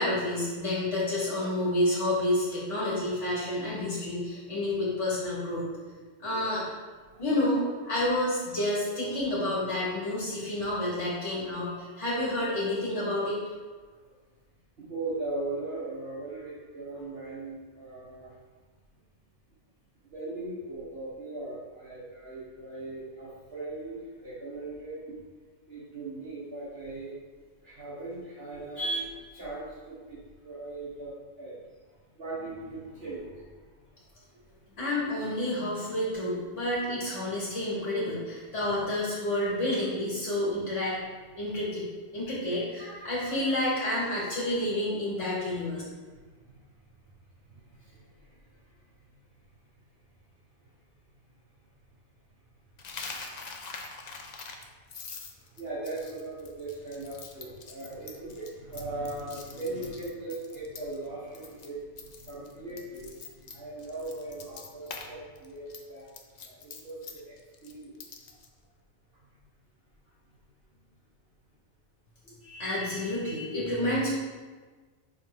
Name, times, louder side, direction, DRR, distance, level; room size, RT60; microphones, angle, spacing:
voice 1, 0.0-5.6 6.2-6.6 7.2-13.4 34.8-41.0 41.4-45.8 72.4-74.1, left 1 dB, 70° left, -7 dB, 1.8 m, -29 dB
voice 2, 14.9-18.3 20.1-25.0 25.7-27.1 27.6-31.6 32.2-33.5 42.8-43.3 46.1-46.2 47.5-48.3 55.6-67.3 67.6-68.0, right 2 dB, 55° right, -8 dB, 1.8 m, -39 dB
Coin (dropping), 52.8-61.1 61.3-61.7 62.0-65.1 65.4-68.5, left 4 dB, 50° left, 0.6 m, -44 dB
5.9 x 3.6 x 4.7 m, 1.4 s
omnidirectional pair, 1.2 m